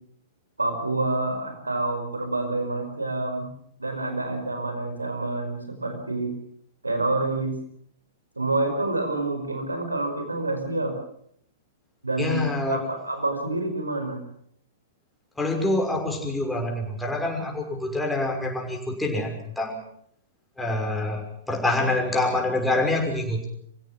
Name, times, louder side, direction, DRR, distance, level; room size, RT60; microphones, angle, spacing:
voice 1, 0.6-3.5 3.8-6.3 6.8-7.6 8.4-10.9 12.0-14.2, right 2 dB, 85° right, 6 dB, 5.2 m, -27 dB
voice 2, 12.2-12.8 15.4-19.8 20.6-23.5, left 2 dB, 5° left, 1 dB, 6.1 m, -26 dB
27.5 x 16.5 x 7.6 m, 0.66 s
figure-of-eight pair, 110°, 0 cm